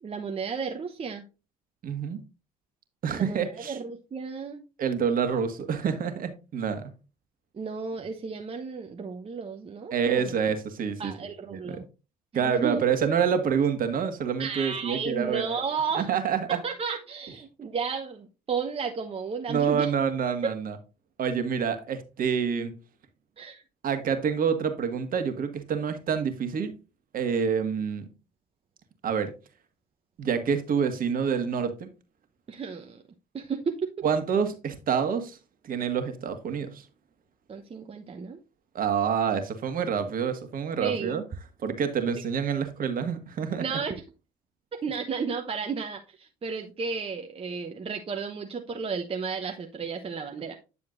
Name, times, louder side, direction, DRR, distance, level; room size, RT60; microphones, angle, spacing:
voice 1, 0.0-1.2 3.1-4.6 7.5-10.3 11.0-11.8 12.3-12.8 14.4-16.1 16.5-19.9 23.4-23.6 32.5-33.0 33.3-33.9 37.5-38.4 40.8-41.2 43.6-44.0 44.8-50.6, right 5 dB, 30° right, 1.0 m, -33 dB
voice 2, 1.8-2.2 3.0-3.8 4.8-6.9 9.9-11.1 11.5-11.8 12.3-15.6 15.9-16.6 19.5-20.8 21.2-22.8 23.8-26.7 27.1-28.1 29.0-29.3 30.2-31.9 34.0-35.4 35.6-36.8 38.8-41.2 41.6-43.6, right 7 dB, 50° right, 1.6 m, -27 dB
9.5 x 6.9 x 2.5 m
hypercardioid pair, 60°, 19 cm